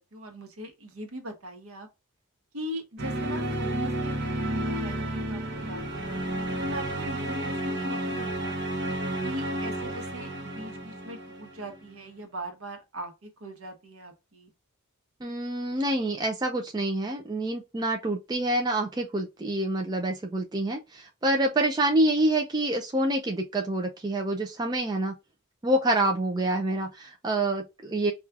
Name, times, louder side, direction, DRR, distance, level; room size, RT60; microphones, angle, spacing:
voice 1, 0.1-1.9 2.5-4.2 4.5-8.6 9.2-14.5, equal, 75° right, 0.9 m, -41 dB
sound 1, 3.0-11.8, right 1 dB, 50° right, 0.8 m, -31 dB
voice 2, 15.2-25.2 25.6-28.1, right 1 dB, 20° right, 0.3 m, -27 dB
4.5 x 2.3 x 2.4 m
head